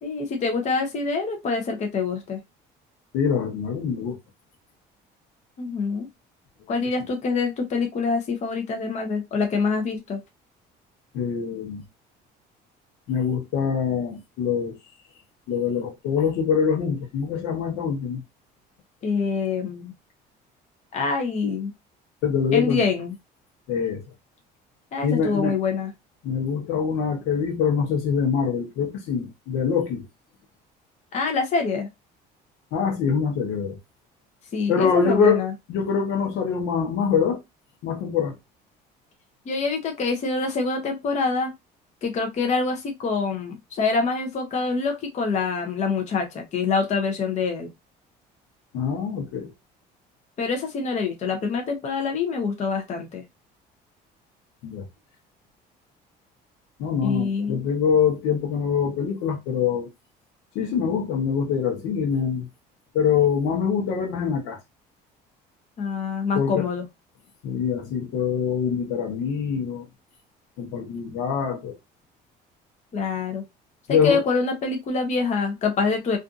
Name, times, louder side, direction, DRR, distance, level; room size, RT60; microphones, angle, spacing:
voice 1, 0.0-2.4 5.6-6.1 6.7-10.2 19.0-19.9 20.9-21.7 22.5-23.1 24.9-25.9 31.1-31.9 34.5-35.5 39.5-41.5 42.0-47.7 50.4-53.2 57.0-57.7 65.8-66.8 72.9-73.4 73.9-76.2, left 4 dB, 40° left, 0.7 m, -25 dB
voice 2, 3.1-4.2 11.1-11.8 13.1-14.8 15.5-18.2 22.2-22.8 23.7-24.0 25.0-25.6 26.2-30.1 32.7-33.8 34.7-37.4 37.8-38.3 48.7-49.5 54.6-54.9 56.8-59.9 60.5-62.5 62.9-64.6 66.3-66.7 67.4-69.9 70.6-71.8 73.9-74.2, left 7 dB, 80° left, 1.0 m, -24 dB
2.6 x 2.5 x 2.4 m
cardioid pair, 120°, 18 cm